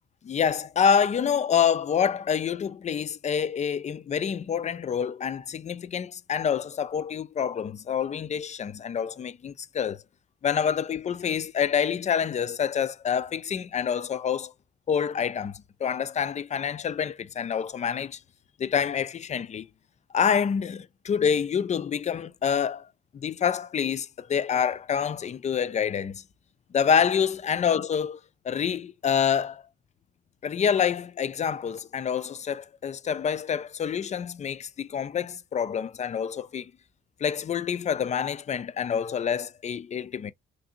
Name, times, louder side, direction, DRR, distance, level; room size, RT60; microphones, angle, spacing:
voice 1, 0.2-10.0 10.4-14.5 14.9-18.2 18.6-19.7 20.1-22.9 23.1-26.2 26.7-28.2 28.4-29.6 30.4-36.7 37.2-40.3, left 7 dB, 35° left, 0.4 m, -27 dB
3.3 x 2.5 x 2.7 m
cardioid pair, 90°, 20 cm